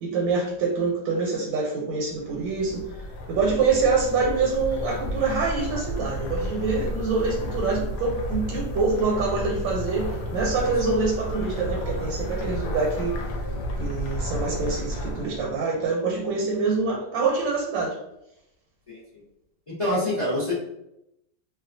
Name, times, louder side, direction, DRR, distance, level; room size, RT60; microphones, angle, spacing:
voice 1, 0.0-2.8 3.3-13.2 13.8-18.0, right 4 dB, 85° right, -2 dB, 1.4 m, -25 dB
sound 1, 2.1-15.6, equal, 70° left, 1.1 m, -32 dB
voice 2, 18.9-19.2 19.7-20.5, left 1 dB, 35° left, -8 dB, 0.5 m, -27 dB
2.9 x 2.3 x 2.5 m, 0.83 s
omnidirectional pair, 2.0 m